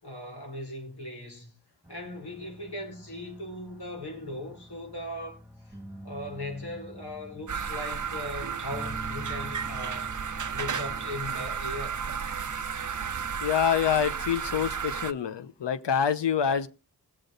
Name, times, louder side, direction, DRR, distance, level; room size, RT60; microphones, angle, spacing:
voice 1, 0.0-1.5 1.9-5.4 6.0-10.1 10.5-12.0 16.4-16.6, left 1 dB, 65° left, 5.2 m, -38 dB
sound 1, 1.8-13.5, equal, ahead, 2.2 m, -47 dB
sound 2, 7.5-15.1, right 7 dB, 45° right, 0.8 m, -33 dB
voice 2, 13.4-16.7, left 8 dB, 90° left, 0.9 m, -26 dB
21.0 x 7.8 x 3.9 m
cardioid pair, 55°, 41 cm